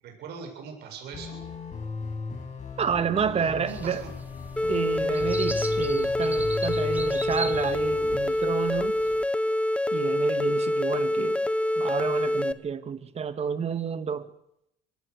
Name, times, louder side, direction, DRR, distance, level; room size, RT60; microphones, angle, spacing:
voice 1, 0.0-1.4 3.2-4.1, right 6 dB, 75° right, 7.6 m, -41 dB
sound 1, 1.1-8.2, left 4 dB, 45° left, 7.1 m, -37 dB
voice 2, 2.8-4.0 4.7-9.0 9.9-11.4 11.8-14.3, right 6 dB, 40° right, 2.0 m, -30 dB
sound 2, 3.7-9.3, right 2 dB, 10° right, 2.0 m, -40 dB
sound 3, 4.6-12.5, left 1 dB, 5° left, 1.3 m, -26 dB
25.0 x 19.5 x 6.7 m
cardioid pair, 110°, 17 cm